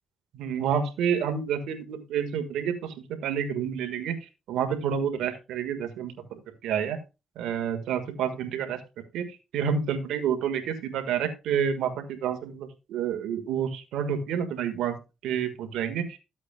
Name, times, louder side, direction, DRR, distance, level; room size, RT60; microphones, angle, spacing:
voice 1, 0.3-4.2 4.5-7.0 7.4-8.8 9.1-14.9 15.2-16.1, right 8 dB, 85° right, 7 dB, 1.6 m, -29 dB
13.5 x 8.2 x 2.3 m, 0.28 s
cardioid pair, 70°, 0 cm